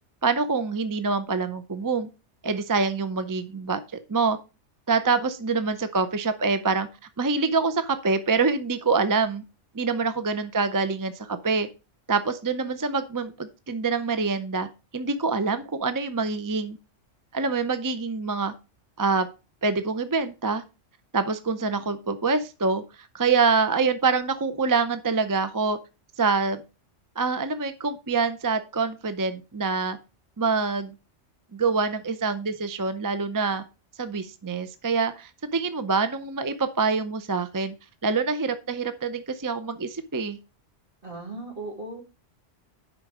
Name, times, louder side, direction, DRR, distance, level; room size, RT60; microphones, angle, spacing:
voice 1, 0.2-2.1 2.4-3.8 4.1-4.4 4.9-6.9 7.2-9.4 9.7-11.7 12.1-14.7 14.9-16.8 17.3-18.5 19.0-19.3 19.6-20.6 21.1-22.8 23.1-25.8 26.2-26.6 27.2-30.0 30.4-30.9 31.5-33.6 34.0-37.7 38.0-40.4, right 4 dB, 30° right, 10 dB, 0.4 m, -25 dB
voice 2, 41.0-42.0, right 2 dB, 50° right, 0 dB, 2.7 m, -37 dB
8.0 x 5.3 x 4.8 m, 0.30 s
omnidirectional pair, 1.2 m